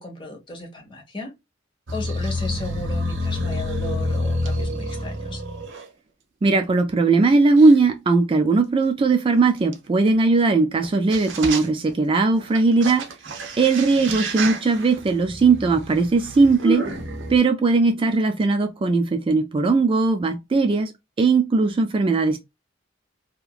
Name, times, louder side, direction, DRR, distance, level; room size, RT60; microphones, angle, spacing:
voice 1, 0.0-1.3 1.9-5.4, left 2 dB, 25° left, 0.9 m, -35 dB
sound 1, 1.9-5.8 6.6-6.7 7.6-7.7 9.7-9.8 10.8-10.9 11.1-11.9 12.3-17.4, equal, 70° right, 0.7 m, -28 dB
voice 2, 6.4-13.1 13.6-16.9 17.3-20.9 21.2-22.4, right 3 dB, 30° right, 0.3 m, -19 dB
2.9 x 2.5 x 2.3 m
head